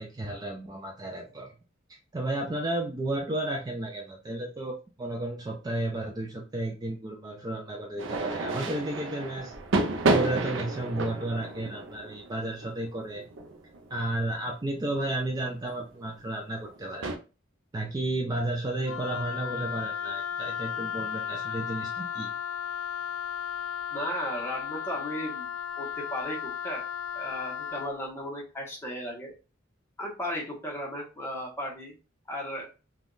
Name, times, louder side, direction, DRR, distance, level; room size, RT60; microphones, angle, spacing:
voice 1, 0.0-1.5 1.9-9.5 10.0-13.2 13.9-17.1 17.7-22.3, right 1 dB, 20° right, 1 dB, 0.4 m, -33 dB
sound 1, 8.0-14.4 15.1-15.3 15.6-15.9 16.6-17.2, right 2 dB, 70° right, 0.5 m, -31 dB
Wind instrument woodwind instrument, 18.8-27.9, left 8 dB, 80° left, 0.3 m, -35 dB
voice 2, 23.9-25.5 25.8-26.8 27.1-29.3 30.0-32.0 32.3-32.7, equal, 15° left, -2 dB, 1.0 m, -35 dB
3.5 x 2.3 x 2.4 m, 0.32 s
head